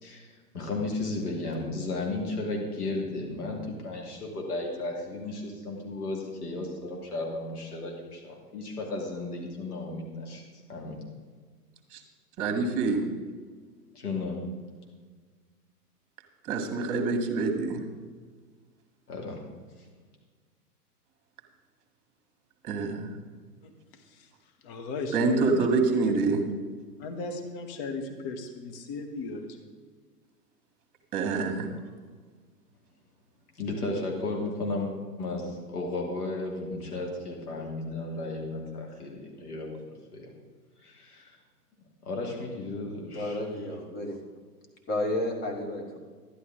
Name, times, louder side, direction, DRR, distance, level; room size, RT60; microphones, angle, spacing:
voice 1, 0.0-11.0 13.9-14.5 19.1-19.4 19.8-19.9 33.6-40.3 40.8-41.4 42.0-43.6, left 2 dB, 70° left, -1 dB, 2.8 m, -34 dB
voice 2, 12.4-13.0 16.5-17.8 22.6-23.1 25.1-26.4 31.1-31.7, right 4 dB, 35° right, 4 dB, 1.7 m, -26 dB
voice 3, 24.6-25.7 27.0-29.7, left 3 dB, 35° left, 5 dB, 1.3 m, -36 dB
voice 4, 43.1-44.2 44.9-46.0, left 1 dB, 20° left, 1 dB, 1.5 m, -31 dB
11.5 x 11.0 x 3.8 m, 1.5 s
figure-of-eight pair, 105°, 47 cm